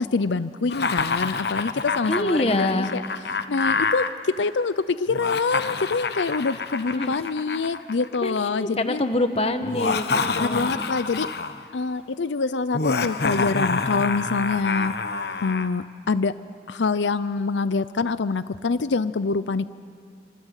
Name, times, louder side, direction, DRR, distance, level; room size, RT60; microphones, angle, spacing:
voice 1, 0.0-3.0 3.5-9.0 10.3-11.3 11.7-14.9 15.4-16.3 16.7-19.7, left 4 dB, 90° left, 15 dB, 0.6 m, -25 dB
Laughter, 0.7-4.1 5.1-8.4 9.6-11.6 12.7-15.7, left 4 dB, 65° left, 1.1 m, -27 dB
voice 2, 2.1-2.9 6.9-7.1 8.2-10.8, left 1 dB, 35° left, 8 dB, 1.4 m, -25 dB
28.0 x 25.5 x 8.3 m, 2.3 s
head